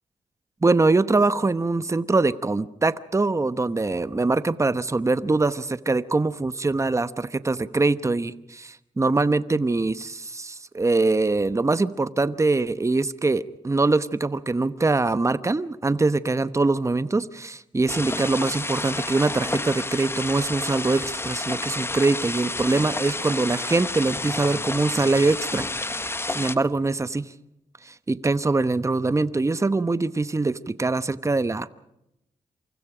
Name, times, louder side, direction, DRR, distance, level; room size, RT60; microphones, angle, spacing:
voice 1, 0.6-27.3 27.8-31.7, right 3 dB, 20° right, 14 dB, 1.0 m, -23 dB
sound 1, 17.9-26.6, left 2 dB, 20° left, 1.1 m, -30 dB
27.5 x 25.0 x 5.0 m, 0.84 s
cardioid pair, 60°, 13 cm